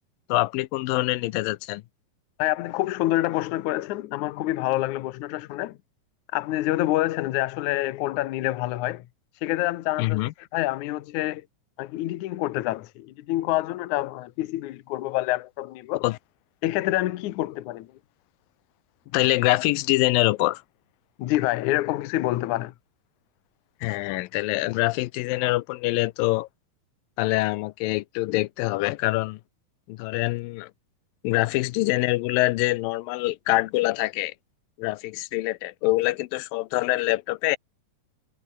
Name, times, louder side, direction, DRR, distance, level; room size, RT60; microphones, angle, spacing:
voice 1, 0.3-1.8 10.0-10.3 16.0-16.2 19.1-20.6 23.8-26.5 27.2-29.4 29.9-30.7 31.2-34.3 34.8-37.6, left 20 dB, 85° left, 2.4 m, -25 dB
voice 2, 2.4-5.8 6.3-9.1 9.4-10.2 10.5-11.5 11.8-16.0 16.6-17.9 21.2-22.7, left 16 dB, 70° left, 2.2 m, -27 dB
omnidirectional pair, 4.0 m